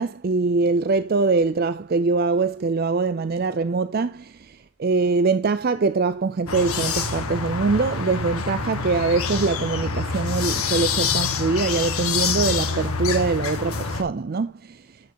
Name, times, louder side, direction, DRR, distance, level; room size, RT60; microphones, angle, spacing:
voice 1, 0.0-14.8, right 4 dB, 45° right, 0.4 m, -23 dB
sound 1, 6.5-14.0, left 5 dB, 80° left, 1.8 m, -26 dB
12.5 x 6.4 x 2.9 m
head